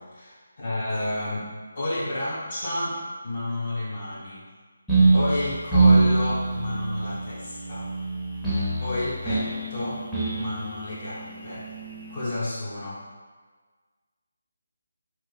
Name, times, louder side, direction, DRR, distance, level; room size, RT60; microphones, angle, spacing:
voice 1, 0.0-3.0 3.2-4.5 5.1-7.9 8.8-10.0 10.3-11.7 12.1-13.0, left 1 dB, 40° left, -8 dB, 0.8 m, -31 dB
sound 1, 4.9-12.4, right 3 dB, ahead, 0.7 m, -24 dB
2.9 x 2.5 x 3.9 m, 1.5 s
figure-of-eight pair, 155°, 0 cm